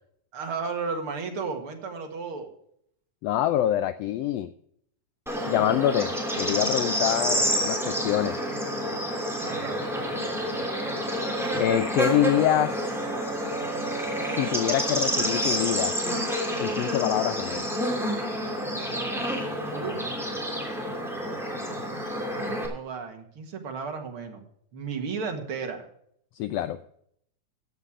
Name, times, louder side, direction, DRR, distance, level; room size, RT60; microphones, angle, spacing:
voice 1, 0.3-2.5 9.4-9.9 19.7-20.2 22.7-24.4 24.7-25.9, right 5 dB, 50° right, 4 dB, 2.4 m, -34 dB
voice 2, 3.2-4.5 5.5-8.4 11.6-12.8 14.3-15.9 16.6-17.6 26.4-26.8, left 12 dB, 85° left, 12 dB, 1.4 m, -25 dB
Bird / Insect, 5.3-22.7, equal, ahead, 2.7 m, -29 dB
14.5 x 8.3 x 4.9 m, 0.70 s
omnidirectional pair, 3.4 m